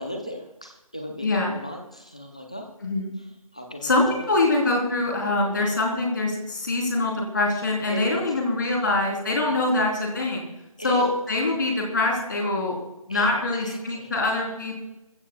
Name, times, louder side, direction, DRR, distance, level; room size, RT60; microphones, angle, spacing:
voice 1, 0.0-2.7 3.5-3.9 4.2-4.3 5.5-5.9 7.9-8.2 8.8-9.0 9.5-9.7 10.8-11.1 13.1-14.1, equal, 10° left, 4 dB, 0.6 m, -37 dB
voice 2, 1.2-1.6 2.8-3.1 3.8-10.5 10.8-12.8 13.1-14.8, left 2 dB, 35° left, 0 dB, 3.5 m, -24 dB
25.0 x 15.0 x 2.3 m, 0.95 s
figure-of-eight pair, 175°, 18 cm